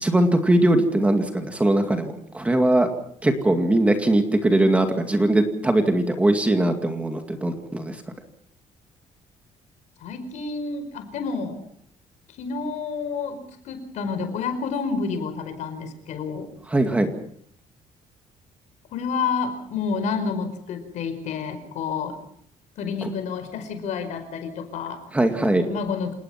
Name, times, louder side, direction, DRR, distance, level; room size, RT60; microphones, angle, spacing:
voice 1, 0.0-2.9 3.2-8.0 16.7-17.1 23.0-23.1 25.1-25.7, right 1 dB, 10° right, 5 dB, 2.2 m, -20 dB
voice 2, 10.0-11.6 12.3-16.5 18.9-22.2 22.8-25.1 25.7-26.1, left 5 dB, 65° left, 9 dB, 5.1 m, -29 dB
28.0 x 19.5 x 5.9 m, 0.66 s
cardioid pair, 170°, 13 cm